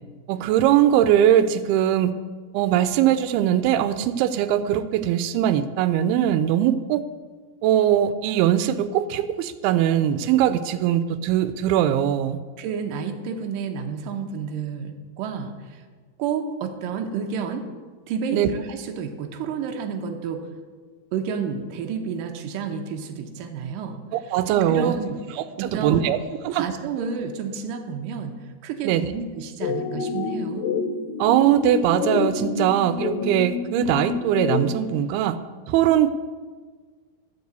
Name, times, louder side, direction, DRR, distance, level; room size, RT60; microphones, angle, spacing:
voice 1, 0.3-2.1 2.5-7.0 7.6-12.4 18.3-18.5 24.1-24.9 25.4-26.2 26.4-26.7 28.8-29.1 31.2-35.4 35.7-36.1, right 11 dB, 90° right, 12 dB, 2.5 m, -21 dB
voice 2, 12.6-15.8 16.2-17.6 18.1-20.5 21.1-24.0 24.7-25.2 25.6-26.1 26.5-30.7, right 6 dB, 75° right, 4 dB, 2.4 m, -30 dB
sound 1, 29.6-34.9, left 6 dB, 75° left, 2.2 m, -28 dB
12.5 x 4.9 x 8.0 m, 1.5 s
omnidirectional pair, 4.4 m